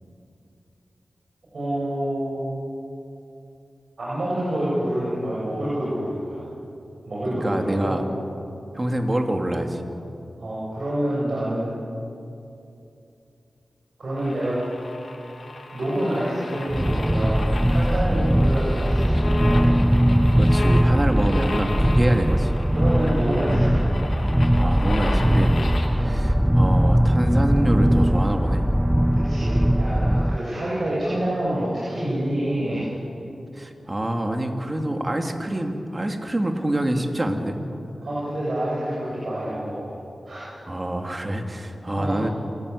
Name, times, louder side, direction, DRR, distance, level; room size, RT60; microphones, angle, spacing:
voice 1, 1.5-2.5 4.0-6.4 7.0-8.0 10.4-11.7 14.0-14.6 15.7-19.7 21.3-21.6 22.7-23.8 25.9-26.1 29.1-32.9 38.0-40.0 40.2-40.5 42.0-42.2, right 1 dB, 65° right, -8 dB, 7.9 m, -27 dB
voice 2, 7.3-8.0 8.7-9.8 18.1-18.2 20.3-22.5 24.6-25.6 26.0-28.7 33.5-37.6 40.7-42.3, right 1 dB, 30° right, 4 dB, 2.7 m, -26 dB
sound 1, 14.2-25.9, left 2 dB, 70° left, 3.2 m, -35 dB
sound 2, 16.7-30.4, equal, 5° right, 0.4 m, -20 dB
27.5 x 15.5 x 8.3 m, 2.7 s
cardioid pair, 50°, 0 cm